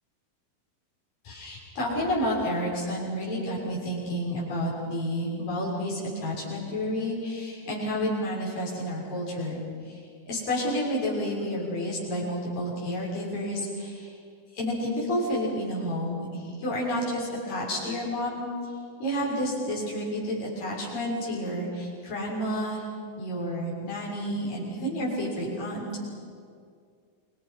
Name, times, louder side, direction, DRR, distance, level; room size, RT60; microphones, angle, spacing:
voice 1, 1.2-9.6 9.9-10.0 10.3-14.1 14.5-18.5 19.0-22.8 23.2-26.1, equal, 70° left, -5 dB, 8.2 m, -30 dB
28.0 x 26.5 x 5.9 m, 2.2 s
omnidirectional pair, 4.0 m